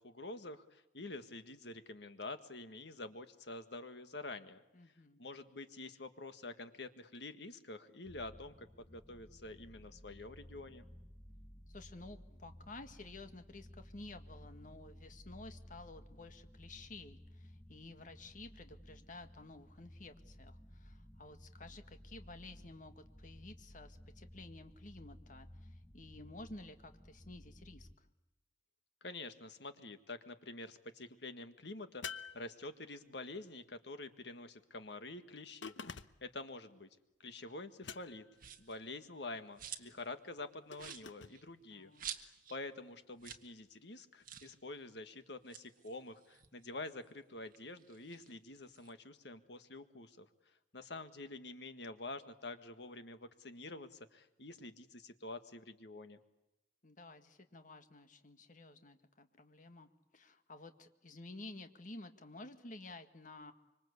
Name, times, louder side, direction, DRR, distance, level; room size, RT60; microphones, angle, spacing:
voice 1, 0.0-4.6 5.2-10.9 29.0-32.0 32.3-35.7 36.2-36.9 37.2-38.2 38.6-50.3 50.7-56.2, left 2 dB, 65° left, 9 dB, 1.7 m, -47 dB
voice 2, 4.7-5.2 11.7-28.1 41.7-42.1 56.8-63.5, left 2 dB, 45° left, 8 dB, 1.8 m, -53 dB
sound 1, 8.0-27.9, equal, 15° left, 1.1 m, -56 dB
sound 2, 32.0-33.1 35.6-36.4 37.8-38.4 40.7-41.4, left 6 dB, 85° left, 1.0 m, -48 dB
sound 3, 38.4-38.8 39.2-40.1 40.4-40.5 40.7-42.6 42.9-43.0 43.2-43.5 43.8-43.9 44.2-44.6 45.3-47.1 47.5-48.9, right 9 dB, 50° right, 1.7 m, -49 dB
25.5 x 24.5 x 8.3 m, 0.95 s
head